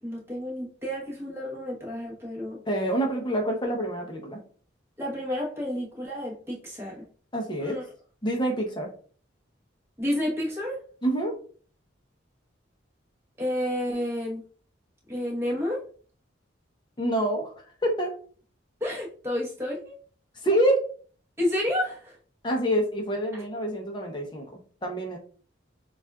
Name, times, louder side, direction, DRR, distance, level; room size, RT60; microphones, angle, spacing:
voice 1, 0.0-2.6 5.0-7.0 7.6-7.8 10.0-10.8 13.4-14.4 15.1-15.8 18.8-19.9 21.4-22.2, left 1 dB, 10° right, -3 dB, 1.1 m, -30 dB
voice 2, 2.7-4.4 7.3-7.8 8.2-8.9 11.0-11.4 17.0-17.5 17.8-18.1 20.4-20.8 22.4-25.2, right 1 dB, 25° left, 2 dB, 0.7 m, -26 dB
7.0 x 2.4 x 2.3 m, 0.43 s
head